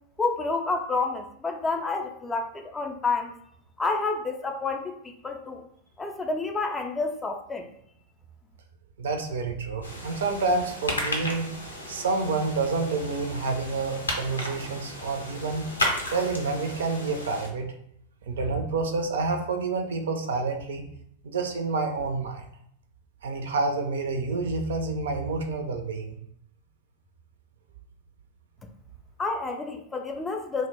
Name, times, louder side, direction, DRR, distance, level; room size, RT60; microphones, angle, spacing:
voice 1, 0.2-3.3 3.8-5.0 5.2-5.7 6.0-7.7 29.2-30.7, left 3 dB, 15° left, 4 dB, 0.3 m, -29 dB
voice 2, 9.0-11.5 11.9-15.7 16.1-17.7 18.3-20.8 21.2-22.4 23.2-26.2, right 3 dB, 65° right, 5 dB, 0.4 m, -28 dB
sound 1, 9.8-17.5, left 1 dB, 75° left, 0.5 m, -34 dB
2.1 x 2.0 x 3.2 m, 0.71 s
figure-of-eight pair, 90°, 0 cm